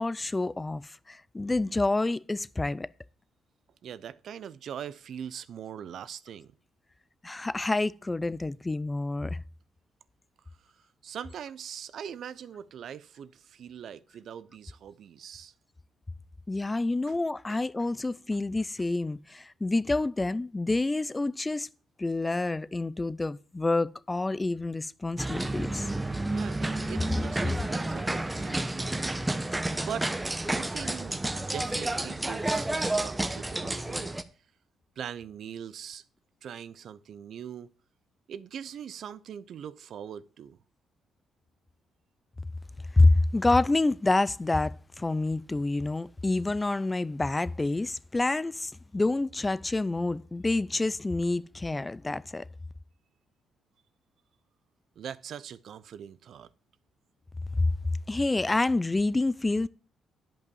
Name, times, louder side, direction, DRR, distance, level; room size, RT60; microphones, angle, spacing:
voice 1, 0.0-2.9 7.2-9.4 16.5-21.7 22.0-25.9 42.9-52.5 57.6-57.7 58.1-59.7, left 2 dB, 20° left, 0.4 m, -27 dB
voice 2, 3.8-6.5 11.0-15.5 17.1-17.2 17.5-17.6 26.3-30.2 30.5-31.2 31.5-34.2 35.0-36.0 36.4-37.7 38.3-40.6 55.0-56.5, right 8 dB, 65° right, 0.6 m, -42 dB
sound 1, 25.2-34.2, right 2 dB, 10° right, 0.9 m, -30 dB
10.5 x 5.4 x 7.1 m
cardioid pair, 90°, 0 cm